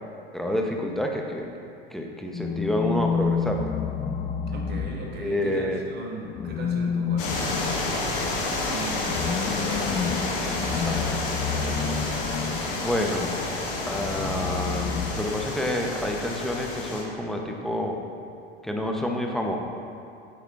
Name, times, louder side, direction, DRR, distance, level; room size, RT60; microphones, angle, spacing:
voice 1, 0.3-1.5 1.9-3.7 5.2-5.9 10.9-11.0 12.7-13.4 13.9-18.0 18.6-19.6, left 1 dB, ahead, 1 dB, 0.8 m, -28 dB
sound 1, 2.3-5.6 6.3-12.9 13.9-15.8, left 6 dB, 20° left, 0.3 m, -30 dB
voice 2, 4.5-12.4, right 2 dB, 35° right, 0 dB, 1.2 m, -39 dB
sound 2, 7.2-17.0, left 2 dB, 50° left, 1.6 m, -30 dB
9.0 x 8.3 x 2.5 m, 2.5 s
figure-of-eight pair, 80°, 30 cm